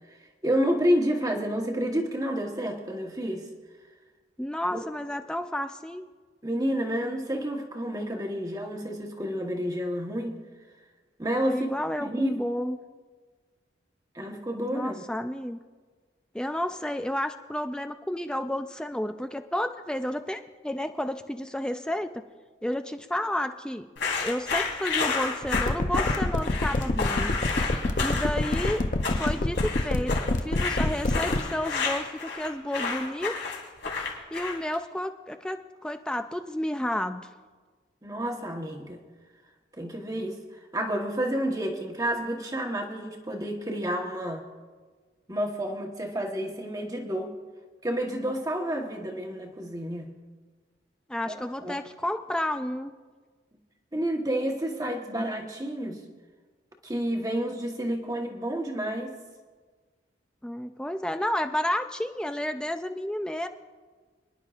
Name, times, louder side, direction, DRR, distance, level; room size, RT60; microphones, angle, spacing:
voice 1, 0.4-3.5 4.7-4.8 6.4-10.4 11.2-12.4 14.1-15.0 38.0-39.0 39.8-44.4 45.3-47.3 47.8-50.2 51.3-51.8 53.9-56.0 56.8-59.2, equal, 20° right, 2 dB, 1.1 m, -30 dB
voice 2, 4.4-6.1 11.5-12.8 14.7-15.6 16.3-22.2 22.6-23.9 24.2-27.4 28.0-28.8 29.1-30.1 30.4-33.3 34.3-37.3 51.1-52.9 60.4-63.5, left 1 dB, 5° left, 7 dB, 0.3 m, -31 dB
sound 1, 24.0-34.7, left 4 dB, 80° left, 2.7 m, -31 dB
sound 2, 25.4-31.4, left 2 dB, 45° left, 0.6 m, -25 dB
26.0 x 10.5 x 2.4 m, 1.4 s
head